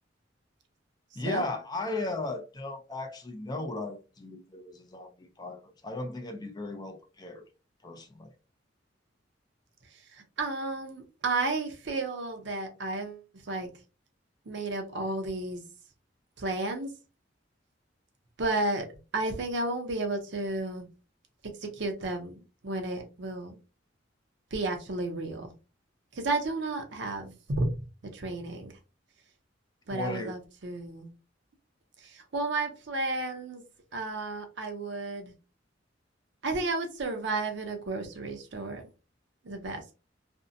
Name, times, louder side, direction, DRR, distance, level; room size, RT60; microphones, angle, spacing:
voice 1, 1.2-7.4 7.8-8.3 29.9-30.3, left 2 dB, 20° left, 0.4 m, -36 dB
voice 2, 9.9-13.7 14.5-15.6 16.4-16.9 18.4-18.9 19.1-20.9 21.4-23.6 24.5-25.5 26.1-27.8 28.1-28.7 29.9-31.1 32.0-33.6 33.9-35.3 36.4-38.9 39.4-39.8, right 2 dB, 65° right, 0.6 m, -32 dB
2.6 x 2.1 x 2.5 m
head